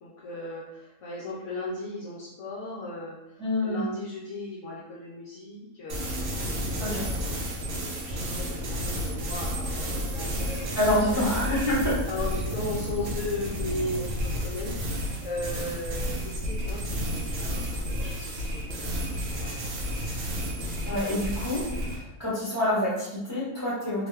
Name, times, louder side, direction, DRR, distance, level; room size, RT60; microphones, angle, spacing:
voice 1, 0.0-10.3 11.1-11.3 12.1-18.9 19.3-19.8, left 2 dB, 65° left, -5 dB, 0.8 m, -37 dB
voice 2, 3.4-3.8 6.8-7.1 10.7-12.0 20.8-24.1, left 1 dB, 15° right, -9 dB, 0.8 m, -27 dB
sound 1, 5.9-22.0, equal, 65° right, 0.9 m, -31 dB
2.9 x 2.2 x 3.1 m, 0.91 s
omnidirectional pair, 1.6 m